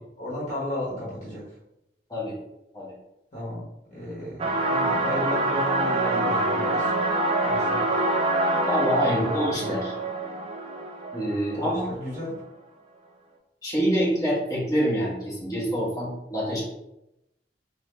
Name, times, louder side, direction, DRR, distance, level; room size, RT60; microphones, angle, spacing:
voice 1, 0.2-1.4 3.3-3.6 3.9-6.9 7.4-7.8 9.0-9.6 11.5-12.4, left 1 dB, 45° left, -7 dB, 1.1 m, -33 dB
sound 1, 4.4-11.9, right 2 dB, 35° right, 0.4 m, -25 dB
voice 2, 8.7-9.9 11.1-11.9 13.6-16.6, equal, 20° left, -6 dB, 1.1 m, -26 dB
3.5 x 2.0 x 3.3 m, 0.87 s
head